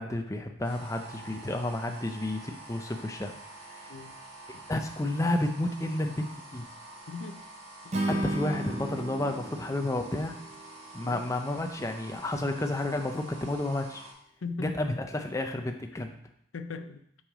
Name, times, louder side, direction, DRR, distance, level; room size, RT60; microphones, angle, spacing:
voice 1, 0.0-3.3 3.7-3.8 4.7-6.6 8.3-10.4 10.9-14.0 14.6-16.1, left 1 dB, 15° left, 4 dB, 0.5 m, -31 dB
sound 1, 0.6-14.1, right 2 dB, 65° right, 2.9 m, -47 dB
voice 2, 3.9-4.2 7.1-7.4 7.8-8.3 11.0-11.2 14.4-14.7 15.9-16.0 16.5-17.0, left 4 dB, 80° left, 9 dB, 0.6 m, -39 dB
Acoustic guitar / Strum, 7.9-11.2, right 1 dB, 35° right, 0.6 m, -34 dB
5.9 x 5.6 x 4.9 m, 0.68 s
head